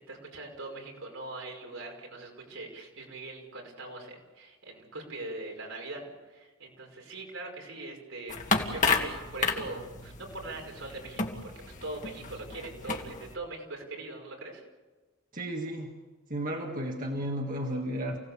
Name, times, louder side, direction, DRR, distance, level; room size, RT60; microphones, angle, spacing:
voice 1, 0.1-11.5 11.8-14.7, right 2 dB, 80° right, 0 dB, 5.6 m, -42 dB
sound 1, 8.3-13.4, left 4 dB, 40° left, 2.2 m, -32 dB
voice 2, 15.3-16.0 16.3-18.2, right 1 dB, 40° right, 1 dB, 2.0 m, -33 dB
29.0 x 17.5 x 7.2 m, 1.2 s
head